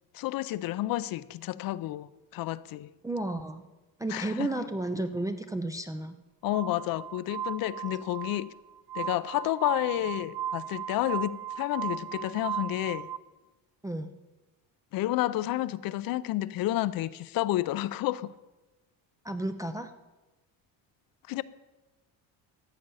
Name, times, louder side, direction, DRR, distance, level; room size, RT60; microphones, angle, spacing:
voice 1, 0.1-2.9 4.1-4.7 6.4-8.5 8.9-13.1 14.9-18.3 21.3-21.4, left 15 dB, 60° left, 0.5 m, -30 dB
voice 2, 3.0-3.7 4.0-6.2 13.8-14.1 19.2-19.9, right 2 dB, 10° right, 0.3 m, -32 dB
Glass, 6.4-13.2, right 9 dB, 70° right, 0.6 m, -37 dB
14.0 x 8.6 x 5.5 m
cardioid pair, 155°, 40 cm